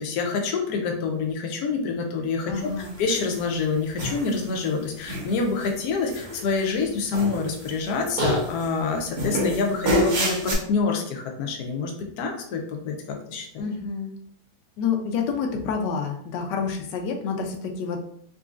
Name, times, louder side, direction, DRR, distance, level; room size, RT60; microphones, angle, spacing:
voice 1, 0.0-2.5 3.0-11.9 12.2-13.6, left 4 dB, 70° left, 2 dB, 1.1 m, -27 dB
voice 2, 2.5-3.0 13.6-14.2 14.8-18.1, left 6 dB, 90° left, 3 dB, 1.2 m, -28 dB
sound 1, 2.8-3.4 4.0-4.6 5.1-5.7 6.1-6.9 7.1-7.9 8.2-8.7 9.2-10.5, equal, 60° right, 1.6 m, -27 dB
3.8 x 3.0 x 2.4 m, 0.64 s
omnidirectional pair, 1.8 m